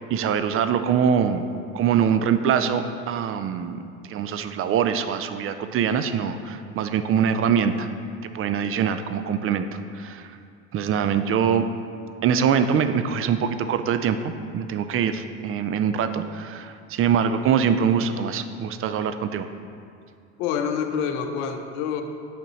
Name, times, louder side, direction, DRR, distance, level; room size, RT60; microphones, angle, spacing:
voice 1, 0.1-1.4 1.7-3.8 4.1-7.9 8.2-10.3 10.7-11.7 12.2-19.5, right 7 dB, 40° right, 10 dB, 0.4 m, -23 dB
voice 2, 20.4-22.0, left 7 dB, 70° left, 6 dB, 0.7 m, -27 dB
8.8 x 5.0 x 3.1 m, 2.4 s
hypercardioid pair, 75°, 36 cm